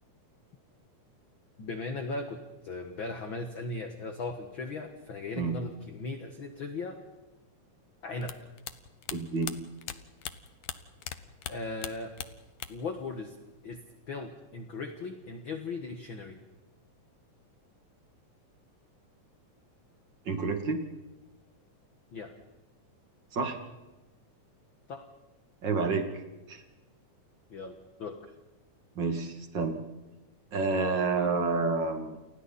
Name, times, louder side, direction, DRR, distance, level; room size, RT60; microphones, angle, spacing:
voice 1, 1.6-7.0 8.0-8.4 11.5-12.1 12.7-13.4 13.6-13.8 14.1-16.4 22.1-22.3 24.9-25.1 27.5-28.3, left 3 dB, 50° left, 5 dB, 1.9 m, -38 dB
sound 1, 8.2-11.2 11.4-12.9 13.2-14.0, left 10 dB, 65° left, 1.5 m, -40 dB
voice 2, 9.1-9.5 20.2-20.8 23.3-23.6 25.6-26.1 26.5-26.6 29.0-29.8 30.5-32.2, right 4 dB, 40° right, 4 dB, 2.7 m, -29 dB
29.5 x 29.5 x 4.2 m, 1.1 s
omnidirectional pair, 3.6 m